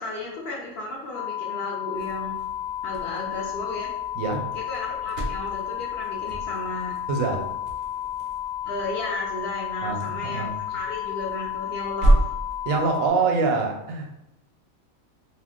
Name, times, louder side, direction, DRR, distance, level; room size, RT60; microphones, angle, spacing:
voice 1, 0.0-2.3 2.8-3.9 4.5-6.9 8.7-12.1, left 2 dB, 60° left, -3 dB, 0.7 m, -34 dB
sound 1, 1.1-13.1, left 11 dB, 80° left, 1.0 m, -32 dB
sound 2, 1.9-13.0, right 1 dB, 60° right, 0.6 m, -31 dB
voice 2, 7.1-7.4 9.8-10.6 12.6-14.2, right 4 dB, 85° right, 3 dB, 1.0 m, -25 dB
2.5 x 2.1 x 3.5 m, 0.87 s
omnidirectional pair, 1.4 m